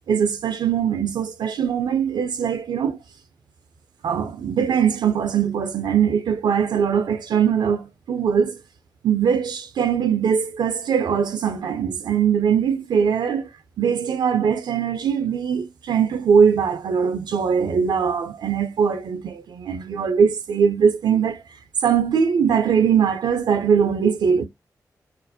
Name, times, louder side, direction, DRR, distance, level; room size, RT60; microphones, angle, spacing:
voice 1, 0.1-3.0 4.0-8.6 9.0-13.5 13.8-21.4 21.8-24.5, right 7 dB, 80° right, 0.4 m, -21 dB
2.4 x 2.0 x 2.5 m
supercardioid pair, 40°, 7 cm